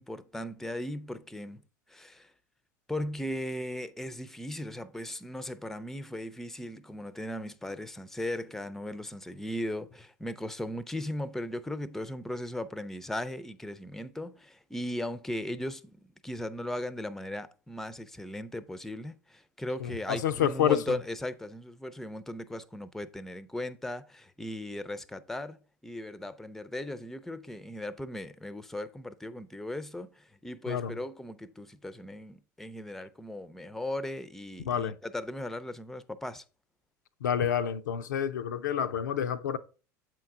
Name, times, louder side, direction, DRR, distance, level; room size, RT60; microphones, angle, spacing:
voice 1, 0.0-1.6 1.9-2.3 2.9-16.0 16.2-36.4, left 1 dB, 5° left, 0.5 m, -37 dB
voice 2, 19.8-21.0 30.7-30.9 34.6-35.0 37.2-39.6, left 9 dB, 80° left, 0.5 m, -29 dB
7.4 x 4.6 x 3.6 m
hypercardioid pair, 85°, 10 cm